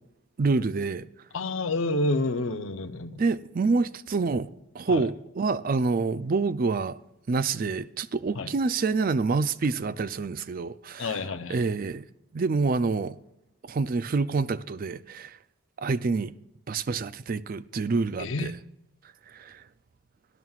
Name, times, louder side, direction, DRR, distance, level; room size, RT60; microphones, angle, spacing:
voice 1, 0.4-1.1 3.2-4.5 4.7-7.0 7.3-11.2 11.5-12.1 12.3-13.2 13.6-15.4 15.8-16.3 16.7-18.6 19.3-19.6, right 4 dB, 40° right, 0.4 m, -27 dB
voice 2, 1.3-3.2 4.9-5.1 8.3-8.5 11.0-11.6 18.2-18.5, left 2 dB, 65° left, 0.7 m, -29 dB
18.5 x 11.0 x 2.4 m
head